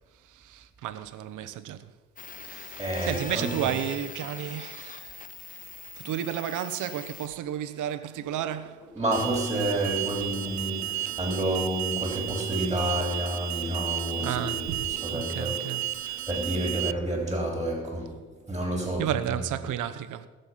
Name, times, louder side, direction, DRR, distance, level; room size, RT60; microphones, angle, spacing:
voice 1, 0.4-1.8 2.4-5.2 6.0-8.9 14.2-14.8 15.1-15.8 19.0-20.3, right 10 dB, 80° right, 1.0 m, -32 dB
sound 1, 2.2-7.3, left 4 dB, 25° left, 0.7 m, -42 dB
voice 2, 2.8-3.8 8.9-15.6 15.9-18.2 18.5-19.7, right 1 dB, 10° right, 3.5 m, -30 dB
sound 2, 8.1-16.2, left 3 dB, 90° left, 2.7 m, -49 dB
Alarm, 9.1-16.9, right 13 dB, 65° right, 0.4 m, -33 dB
20.0 x 6.9 x 5.8 m
cardioid pair, 90°, 30 cm